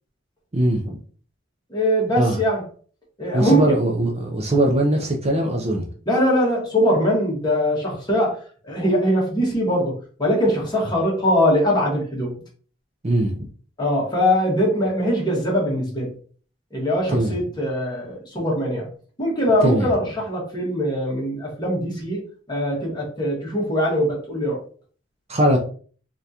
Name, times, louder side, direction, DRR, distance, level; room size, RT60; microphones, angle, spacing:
voice 1, 0.5-1.0 2.2-2.4 3.3-5.9 13.0-13.3 17.1-17.4 19.6-19.9 25.3-25.6, right 1 dB, 30° right, 0.6 m, -20 dB
voice 2, 1.7-2.6 3.2-3.6 6.1-8.4 8.6-9.9 10.2-12.3 13.8-16.1 16.7-18.9 19.2-22.2 22.5-24.6, equal, 20° left, 1.6 m, -21 dB
3.7 x 3.4 x 2.8 m
head